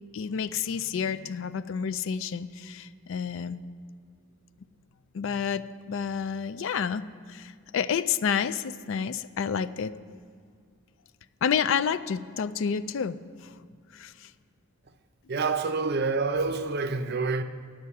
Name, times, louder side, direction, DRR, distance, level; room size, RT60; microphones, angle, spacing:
voice 1, 0.1-3.6 5.1-7.0 7.3-9.9 11.4-13.2 13.4-13.5 13.9-14.3, left 7 dB, 60° left, 0.3 m, -29 dB
voice 2, 15.3-17.4, right 4 dB, 45° right, 0.5 m, -27 dB
11.0 x 6.6 x 8.2 m
head